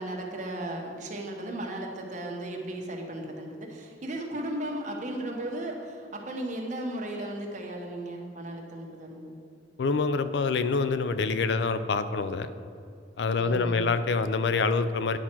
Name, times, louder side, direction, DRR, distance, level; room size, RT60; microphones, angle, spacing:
voice 1, 0.0-9.3 13.4-13.9, right 1 dB, 45° right, 1 dB, 1.2 m, -35 dB
voice 2, 9.8-12.5 13.2-15.2, left 4 dB, 70° left, 11 dB, 0.4 m, -26 dB
10.0 x 4.4 x 6.0 m, 2.4 s
head